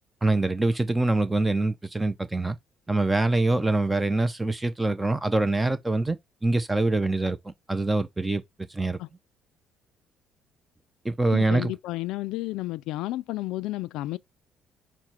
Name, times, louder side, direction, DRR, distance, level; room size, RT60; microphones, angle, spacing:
voice 1, 0.2-2.6 2.9-6.2 6.4-8.4 8.7-9.0 11.0-11.7, right 2 dB, 15° right, 0.4 m, -24 dB
voice 2, 11.3-14.2, left 17 dB, 85° left, 0.3 m, -31 dB
5.9 x 2.1 x 4.1 m
cardioid pair, 105°, 0 cm